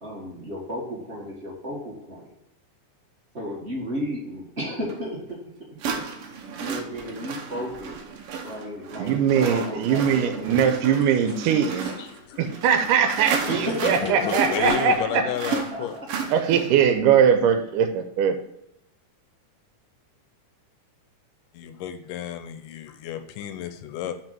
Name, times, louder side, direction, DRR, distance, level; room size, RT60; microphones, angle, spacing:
voice 1, 0.0-2.3 3.3-5.4 6.6-8.0 8.4-9.2 9.5-10.6 13.5-14.8 15.2-16.1, equal, 30° right, 1.2 m, -33 dB
sound 1, 4.9-5.0 5.8-16.9, right 5 dB, 70° right, 1.4 m, -33 dB
voice 2, 9.0-11.9 12.4-15.3 16.3-18.4, right 7 dB, 85° right, 2.2 m, -21 dB
voice 3, 10.9-12.5 13.3-16.0 21.5-24.1, left 10 dB, 85° left, 2.3 m, -33 dB
6.0 x 5.1 x 5.9 m
omnidirectional pair, 3.7 m